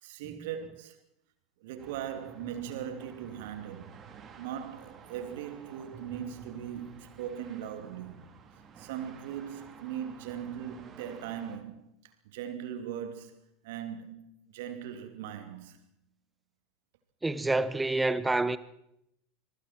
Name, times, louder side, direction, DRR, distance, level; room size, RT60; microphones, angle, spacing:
voice 1, 0.0-1.0 1.6-4.0 4.4-8.3 8.8-15.8, right 9 dB, 60° right, 3.0 m, -40 dB
sound 1, 1.8-11.6, right 5 dB, 35° right, 3.5 m, -51 dB
voice 2, 17.2-18.6, right 2 dB, 10° right, 1.3 m, -27 dB
26.0 x 22.5 x 4.6 m
figure-of-eight pair, 80°, 0 cm